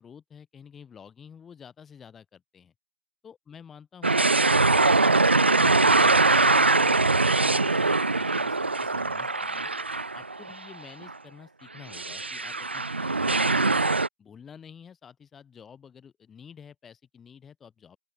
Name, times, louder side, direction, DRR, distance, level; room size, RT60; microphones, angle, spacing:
voice 1, 0.0-2.7 3.2-9.7 10.1-13.8 14.2-18.0, left 7 dB, ahead, 1.0 m, -50 dB
sound 1, 4.0-10.6 11.0-11.1 11.9-14.1, right 3 dB, 85° right, 0.6 m, -22 dB
open air
figure-of-eight pair, 175°, 6 cm